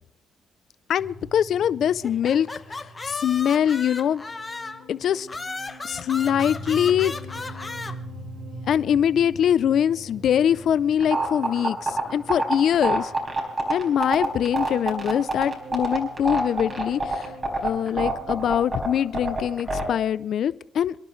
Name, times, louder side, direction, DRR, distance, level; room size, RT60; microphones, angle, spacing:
voice 1, 0.9-2.5 2.7-4.3 4.9-5.3 5.8-7.1 8.7-13.1 13.7-17.3 17.6-20.9, left 9 dB, 65° left, 17 dB, 0.4 m, -23 dB
sound 1, 1.0-19.8, right 1 dB, 85° right, 4.6 m, -43 dB
sound 2, 2.0-4.9 5.3-7.9, left 3 dB, 25° left, 1.2 m, -35 dB
sound 3, 11.0-19.8, right 3 dB, 30° right, 4.7 m, -25 dB
27.0 x 11.0 x 3.2 m, 0.73 s
cardioid pair, 90°, 0 cm